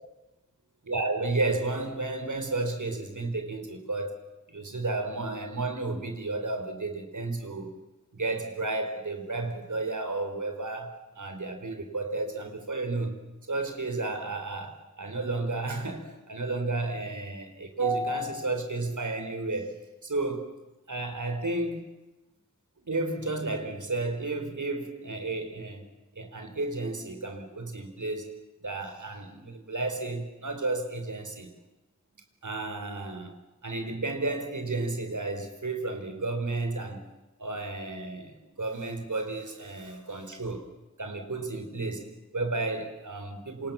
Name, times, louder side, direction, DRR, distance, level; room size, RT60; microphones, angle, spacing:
voice 1, 0.8-4.2 4.5-7.7 8.1-13.2 13.5-20.5 20.9-21.9 22.8-25.9 26.2-28.3 28.6-31.5 32.4-33.3 33.6-37.1 37.4-40.7 41.0-43.7, right 2 dB, 85° right, 4.4 m, -32 dB
27.5 x 27.5 x 7.2 m
wide cardioid pair, 60°, 29 cm